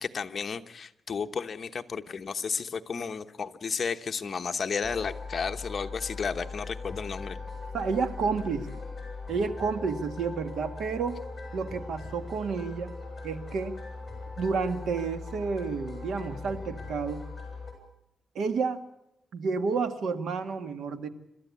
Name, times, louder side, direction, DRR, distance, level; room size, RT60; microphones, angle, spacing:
voice 1, 0.0-7.4, left 5 dB, 40° left, 8 dB, 1.1 m, -33 dB
sound 1, 4.8-17.7, left 3 dB, 20° left, 8.0 m, -40 dB
voice 2, 7.7-8.8 9.3-11.2 11.5-12.9 13.2-13.8 14.4-17.2 18.4-18.8 19.3-21.1, right 5 dB, 90° right, 9 dB, 1.8 m, -30 dB
27.5 x 13.0 x 8.5 m, 0.81 s
wide cardioid pair, 145°, 0 cm